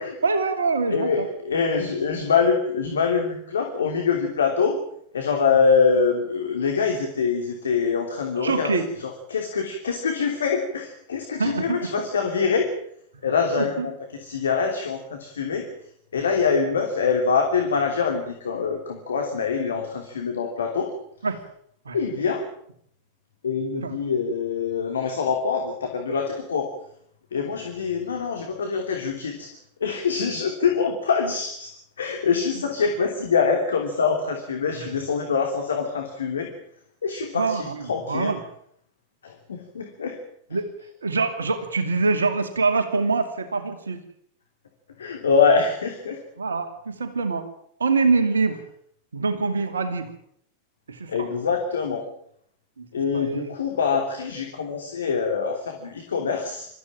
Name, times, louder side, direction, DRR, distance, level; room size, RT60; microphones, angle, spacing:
voice 1, 0.2-1.3 8.4-8.9 11.4-11.9 13.6-13.9 21.2-21.4 21.8-22.0 23.8-23.9 34.7-34.9 37.3-38.4 40.5-40.7 41.0-44.0 46.4-47.4 47.8-48.6 49.1-50.1 50.9-51.3 52.8-52.9 53.1-53.5, right 4 dB, 70° right, 8 dB, 2.7 m, -24 dB
voice 2, 0.9-4.8 5.1-12.7 13.2-15.7 16.1-20.9 21.9-22.4 23.4-26.7 27.3-29.5 29.8-36.5 37.0-38.3 39.2-40.2 45.0-46.2 51.1-52.0 52.9-56.7, left 5 dB, 70° left, 3 dB, 3.1 m, -24 dB
25.0 x 14.5 x 8.9 m, 0.68 s
figure-of-eight pair, 90°, 0 cm